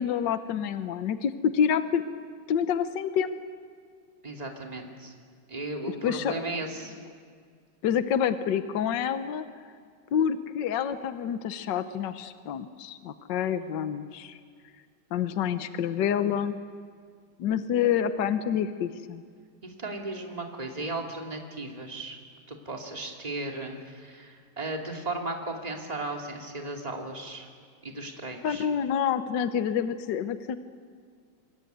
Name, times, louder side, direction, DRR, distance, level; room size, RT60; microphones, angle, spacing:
voice 1, 0.0-2.0 2.5-3.4 5.9-6.5 7.8-9.5 10.1-14.4 15.1-16.6 17.4-19.2 28.4-30.6, left 8 dB, 70° left, 10 dB, 1.6 m, -27 dB
voice 2, 4.2-5.1 5.5-6.9 19.6-22.2 22.5-27.5 27.8-28.7, right 2 dB, 20° right, 1 dB, 2.8 m, -36 dB
26.5 x 23.0 x 9.4 m, 2.1 s
omnidirectional pair, 2.1 m